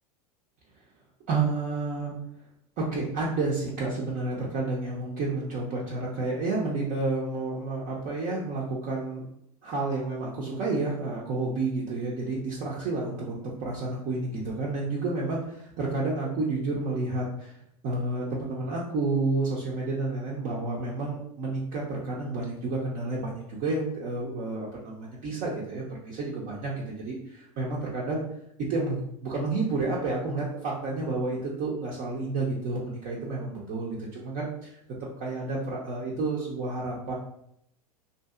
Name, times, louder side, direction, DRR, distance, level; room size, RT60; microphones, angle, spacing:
voice 1, 1.3-2.1 2.8-9.3 9.6-17.5 17.8-28.2 28.7-34.8 35.2-37.1, right 3 dB, 40° right, -4 dB, 0.7 m, -30 dB
2.7 x 2.6 x 2.4 m, 0.75 s
hypercardioid pair, 90°, 19 cm